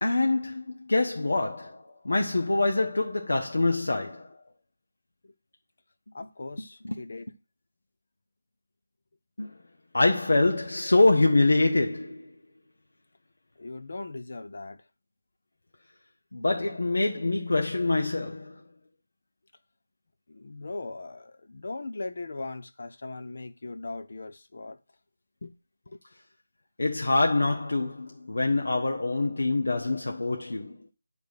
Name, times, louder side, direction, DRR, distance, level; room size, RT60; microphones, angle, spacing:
voice 1, 0.0-4.4 6.8-7.0 9.4-9.5 9.9-12.3 16.3-18.6 26.8-30.8, left 2 dB, 70° left, 1.2 m, -25 dB
voice 2, 6.1-7.3 13.6-14.8 20.3-24.8 25.4-25.6 25.9-26.0, left 3 dB, 55° left, 0.9 m, -39 dB
10.5 x 3.5 x 6.6 m
figure-of-eight pair, 165°, 0 cm